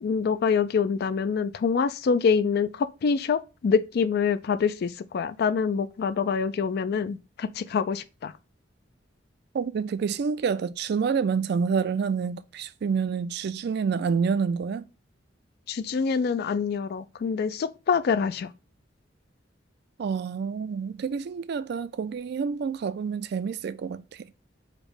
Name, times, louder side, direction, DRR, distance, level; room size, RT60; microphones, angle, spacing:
voice 1, 0.0-8.3 15.7-18.5, left 6 dB, 55° left, 0.3 m, -25 dB
voice 2, 9.5-14.9 20.0-24.0, right 6 dB, 60° right, 0.3 m, -28 dB
5.0 x 2.1 x 4.6 m
head